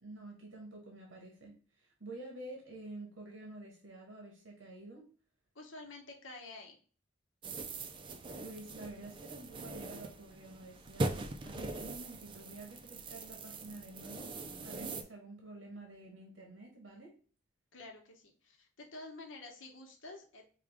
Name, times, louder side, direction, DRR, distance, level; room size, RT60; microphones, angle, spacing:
voice 1, 0.0-5.0 8.4-14.3 14.6-17.1, right 2 dB, 85° right, 0 dB, 1.1 m, -49 dB
voice 2, 5.5-6.8 17.7-20.4, left 2 dB, 85° left, 2 dB, 1.0 m, -49 dB
sound 1, 7.4-15.0, right 2 dB, 25° right, 0.4 m, -41 dB
4.9 x 2.3 x 3.4 m, 0.41 s
head